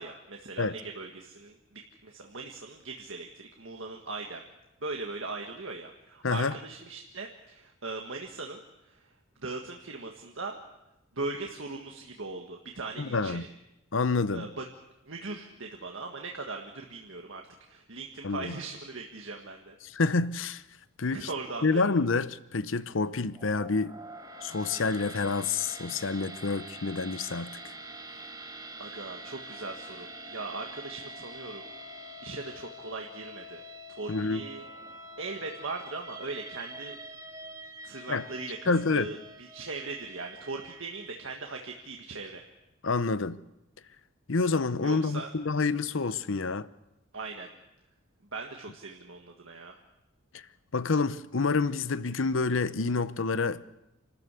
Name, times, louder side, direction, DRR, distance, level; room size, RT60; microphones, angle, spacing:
voice 1, 0.0-4.4 4.8-8.6 8.9-9.0 9.4-10.6 11.1-13.5 14.3-14.6 15.1-17.4 17.7-19.7 21.1-21.8 28.8-31.7 32.2-33.6 34.0-34.6 35.2-37.0 37.8-42.4 44.8-45.3 47.1-47.5 48.3-49.7, right 3 dB, 70° right, 1.7 m, -39 dB
voice 2, 6.2-6.5 13.0-13.4 13.9-14.5 18.2-18.6 19.8-20.6 21.0-21.3 21.6-23.9 24.4-27.6 34.1-34.5 38.1-38.3 38.7-39.1 42.8-43.4 44.3-46.7 50.3-50.4 50.7-53.6, left 4 dB, 70° left, 0.8 m, -28 dB
sound 1, 23.3-41.6, right 1 dB, 20° right, 1.8 m, -45 dB
28.0 x 13.5 x 8.3 m
head